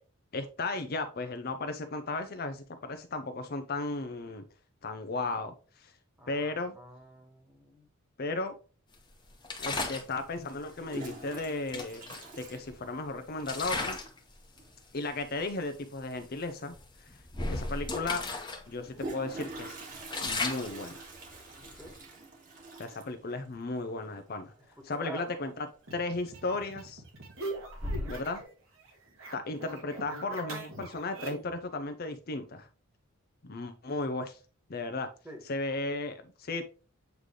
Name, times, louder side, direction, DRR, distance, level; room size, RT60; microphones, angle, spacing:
voice 1, 0.3-4.4 4.8-5.9 6.3-6.8 8.2-8.5 9.6-14.0 14.9-16.7 17.0-17.1 17.5-18.2 18.7-19.8 20.2-21.0 22.8-24.5 24.8-25.7 25.9-27.0 28.1-28.4 29.3-32.7 33.4-34.4 34.7-35.1 35.4-36.6, left 3 dB, 45° left, 8 dB, 0.6 m, -35 dB
voice 2, 6.2-7.9 21.8-21.9 25.0-25.3 27.8-28.1 35.2-35.4, right 1 dB, 10° right, 1 dB, 1.6 m, -46 dB
Toilet flush, 9.3-9.4 10.6-13.4 13.7-13.8 14.0-14.1 14.4-14.8 16.5-16.6 17.0-17.1 18.6-25.3 25.6-26.0 26.5-27.0 27.4-28.4, right 1 dB, 40° right, 2.0 m, -43 dB
sound 1, 9.4-10.1 11.3-11.4 11.7-12.9 13.4-14.2 14.6-14.8 15.5-15.6 15.9-16.2 16.7-18.6 19.0-19.1 19.5-22.0, left 3 dB, 20° left, 1.1 m, -36 dB
sound 2, 25.8-28.5 28.8-31.6, right 2 dB, 70° right, 1.9 m, -42 dB
8.1 x 3.3 x 3.7 m, 0.35 s
head